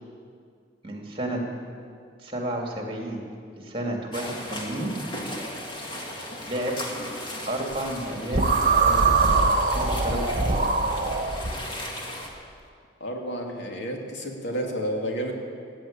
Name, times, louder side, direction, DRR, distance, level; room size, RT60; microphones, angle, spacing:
voice 1, 0.8-1.4 2.2-3.2 3.6-4.9 6.5-6.8 7.5-8.4 8.8-9.5 9.7-10.6, right 1 dB, 30° right, 0 dB, 2.5 m, -31 dB
sound 1, 4.1-12.3, left 1 dB, 25° left, 2.0 m, -36 dB
sound 2, 8.3-11.5, right 3 dB, 50° right, 1.4 m, -22 dB
voice 2, 13.0-15.3, equal, 85° left, 1 dB, 2.4 m, -30 dB
17.5 x 9.6 x 8.7 m, 2.2 s
head